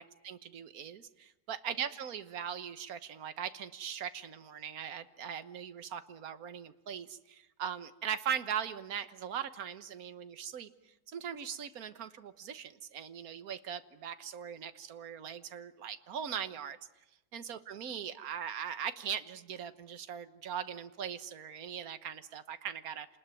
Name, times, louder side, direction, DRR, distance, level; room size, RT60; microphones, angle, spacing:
voice 1, 0.0-10.7 11.1-16.8 17.3-23.1, right 8 dB, 60° right, 11 dB, 1.6 m, -40 dB
29.0 x 20.0 x 9.1 m, 0.93 s
omnidirectional pair, 1.8 m